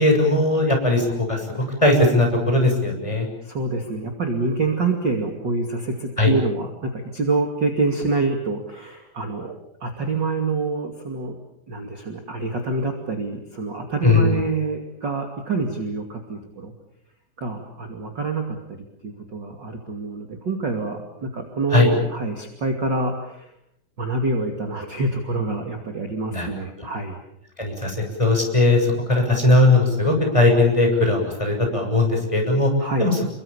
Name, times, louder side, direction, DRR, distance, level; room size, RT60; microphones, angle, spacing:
voice 1, 0.0-3.3 6.2-6.3 14.0-14.4 21.7-21.9 26.3-26.5 27.6-32.7 33.0-33.2, left 2 dB, 5° left, 2 dB, 6.8 m, -19 dB
voice 2, 3.4-9.5 9.8-11.4 11.7-16.7 17.4-18.8 19.0-23.5 24.0-27.2 32.8-33.1, right 3 dB, 35° right, 3 dB, 2.0 m, -26 dB
30.0 x 23.5 x 7.2 m, 0.74 s
omnidirectional pair, 5.7 m